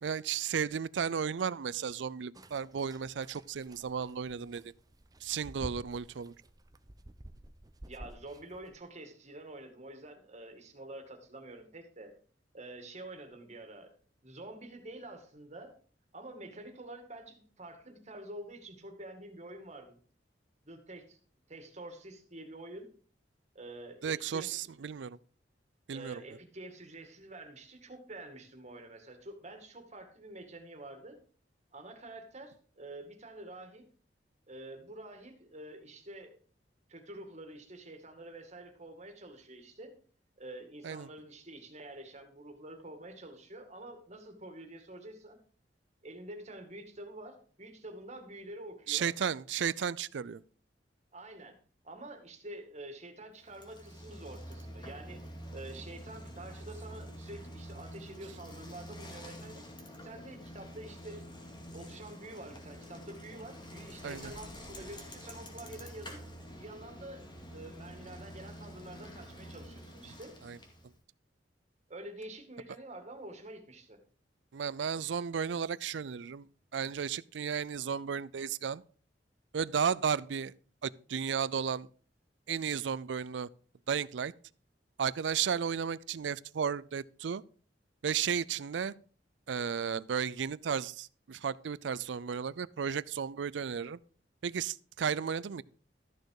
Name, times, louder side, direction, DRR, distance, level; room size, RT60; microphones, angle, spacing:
voice 1, 0.0-4.7 5.2-6.3 24.0-25.2 25.9-26.2 40.8-41.1 48.9-50.4 64.0-64.3 70.4-70.6 74.5-76.5 76.7-78.8 79.5-80.5 80.8-81.9 82.5-83.5 83.9-84.3 85.0-87.4 88.0-88.9 89.5-94.0 94.4-95.6, right 7 dB, 80° right, 0.4 m, -34 dB
sound 1, 2.3-8.8, right 1 dB, 20° right, 0.7 m, -51 dB
voice 2, 7.9-12.1 12.5-13.9 14.2-15.7 16.1-20.0 20.7-21.2 21.5-22.9 23.5-24.7 25.9-31.2 31.7-33.8 34.5-36.4 36.9-39.9 40.4-45.4 46.0-49.1 51.1-51.6 51.8-55.2 55.5-59.6 60.0-61.3 61.7-66.2 66.6-70.4 71.9-74.0, right 1 dB, 40° right, 2.2 m, -47 dB
Bicycle, 53.4-70.9, equal, 25° left, 2.3 m, -47 dB
13.5 x 6.5 x 4.8 m
head